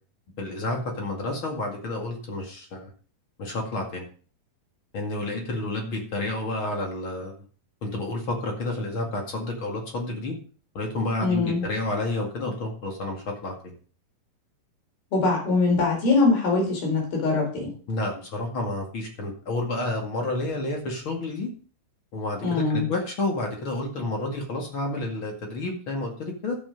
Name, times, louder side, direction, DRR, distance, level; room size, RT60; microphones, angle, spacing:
voice 1, 0.4-2.9 3.4-4.1 4.9-7.3 7.8-10.3 10.7-13.8 17.9-21.5 22.1-26.6, left 2 dB, 40° left, 1 dB, 2.5 m, -30 dB
voice 2, 11.2-11.6 15.1-17.7 22.4-22.9, left 3 dB, 80° left, 0 dB, 6.2 m, -22 dB
11.5 x 7.8 x 5.2 m, 0.41 s
omnidirectional pair, 4.2 m